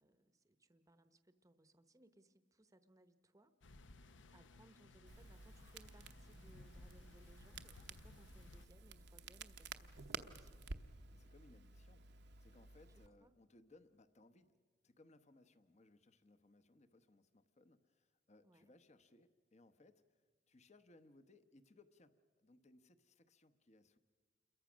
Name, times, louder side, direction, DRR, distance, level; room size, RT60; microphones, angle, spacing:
voice 1, 0.0-3.5 4.3-10.6 13.2-13.3 18.4-18.7, right 1 dB, 15° right, 11 dB, 0.9 m, -68 dB
sound 1, 3.6-8.7, left 2 dB, 75° left, 0.9 m, -60 dB
Crackle, 5.1-13.1, right 4 dB, 60° right, 0.9 m, -53 dB
voice 2, 10.8-14.6 14.8-20.2 20.5-24.0, left 2 dB, 35° left, 11 dB, 1.0 m, -67 dB
28.0 x 22.5 x 6.2 m, 1.5 s
head